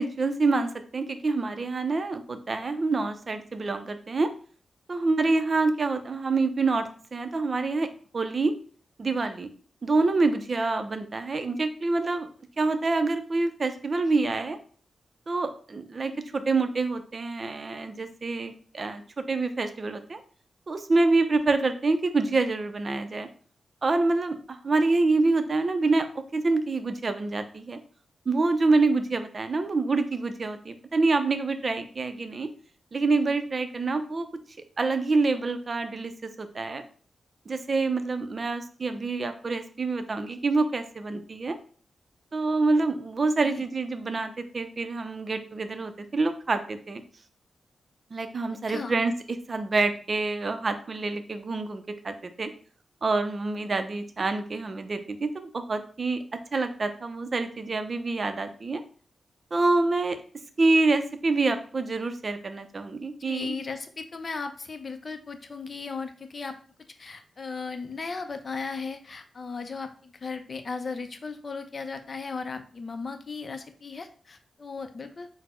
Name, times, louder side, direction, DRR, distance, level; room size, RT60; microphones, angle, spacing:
voice 1, 0.0-4.3 4.9-7.9 8.1-8.5 9.0-9.5 9.8-12.3 12.6-14.6 15.3-20.2 20.7-23.3 23.8-27.8 28.3-32.5 32.9-34.3 34.8-36.8 37.5-41.6 42.3-47.0 48.1-49.1 49.5-52.5 53.0-56.2 56.5-58.8 59.5-60.2 60.6-63.5, right 3 dB, 45° right, 9 dB, 0.5 m, -26 dB
voice 2, 63.3-66.6 67.0-75.3, left 4 dB, 45° left, 8 dB, 0.5 m, -36 dB
4.1 x 2.0 x 4.2 m, 0.44 s
wide cardioid pair, 100°, 0 cm